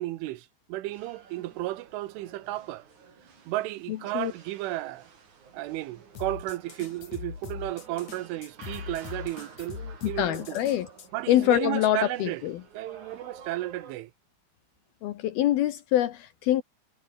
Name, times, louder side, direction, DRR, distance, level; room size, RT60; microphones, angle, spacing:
voice 1, 0.0-2.9 3.5-5.1 5.5-10.6 11.1-12.4 12.7-14.1, right 17 dB, 90° right, 3.6 m, -33 dB
sound 1, 0.9-13.9, right 6 dB, 45° right, 4.7 m, -51 dB
voice 2, 3.9-4.3 10.0-10.9 11.3-12.6 15.0-16.6, left 12 dB, 70° left, 2.5 m, -25 dB
sound 2, 6.1-11.1, left 7 dB, 45° left, 3.6 m, -41 dB
omnidirectional pair, 5.4 m